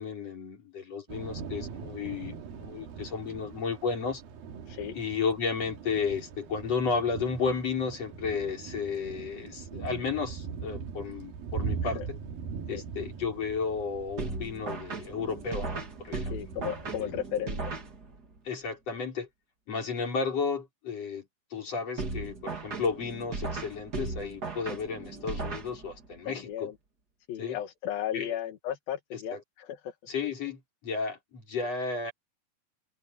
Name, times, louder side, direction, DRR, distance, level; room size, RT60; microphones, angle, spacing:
voice 1, 0.0-4.2 4.9-12.2 12.7-16.4 17.0-17.2 18.4-19.3 19.7-21.2 21.5-26.7 27.4-27.6 28.1-28.4 29.1-29.4 30.1-32.1, left 5 dB, 45° left, 6.3 m, -33 dB
Thunder / Rain, 1.1-17.2, right 6 dB, 85° right, 3.8 m, -41 dB
sound 1, 14.2-18.4 22.0-26.2, right 3 dB, 30° right, 2.5 m, -37 dB
voice 2, 16.3-17.6 19.7-19.8 26.3-26.7 27.3-29.9, left 10 dB, 85° left, 3.4 m, -35 dB
omnidirectional pair, 4.0 m